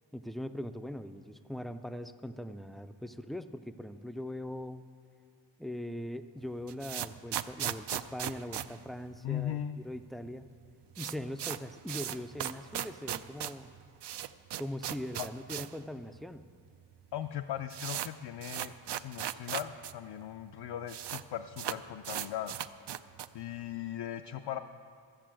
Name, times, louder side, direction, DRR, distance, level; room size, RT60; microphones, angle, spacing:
voice 1, 0.1-4.8 5.6-10.5 11.0-13.7 14.6-16.5, left 1 dB, ahead, 10 dB, 0.3 m, -41 dB
sound 1, 6.4-9.7 9.9-10.0 10.3-10.4 10.6-15.8 16.1-16.2 16.9-17.0 17.2-19.9 20.2-20.3 20.5-21.2 21.5-23.4, right 11 dB, 65° right, 0.5 m, -38 dB
voice 2, 9.2-9.8 15.2-15.3 17.1-22.5 23.3-24.6, left 11 dB, 65° left, 7 dB, 0.5 m, -38 dB
13.5 x 7.6 x 7.5 m, 2.2 s
wide cardioid pair, 115°, 44 cm